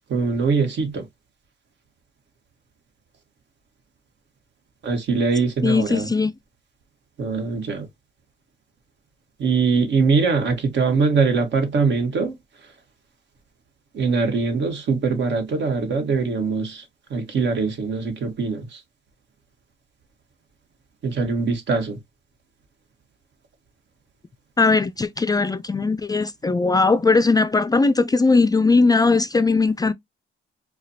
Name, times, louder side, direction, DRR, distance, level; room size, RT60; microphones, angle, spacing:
voice 1, 0.1-1.0 4.8-6.1 7.2-7.9 9.4-12.3 13.9-16.8 17.1-18.6 21.0-22.0, right 4 dB, 65° right, 1.3 m, -22 dB
voice 2, 5.6-6.3 24.6-29.9, left 3 dB, 20° left, 0.3 m, -19 dB
4.8 x 2.3 x 2.8 m
cardioid pair, 90°, 20 cm